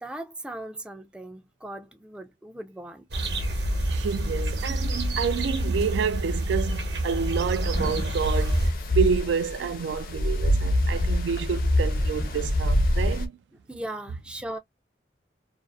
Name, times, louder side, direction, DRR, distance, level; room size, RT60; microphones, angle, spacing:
voice 1, 0.0-3.1 13.7-14.6, right 1 dB, 5° right, 0.3 m, -38 dB
sound 1, 3.1-8.7, right 1 dB, 70° right, 0.9 m, -28 dB
voice 2, 3.9-8.6 8.9-13.3, right 6 dB, 85° right, 0.3 m, -28 dB
Drawer open or close, 7.5-10.0 10.5-10.6 10.8-12.5, left 1 dB, 75° left, 1.0 m, -40 dB
sound 2, 8.2-13.3, left 1 dB, 50° left, 0.5 m, -25 dB
2.4 x 2.4 x 2.3 m
head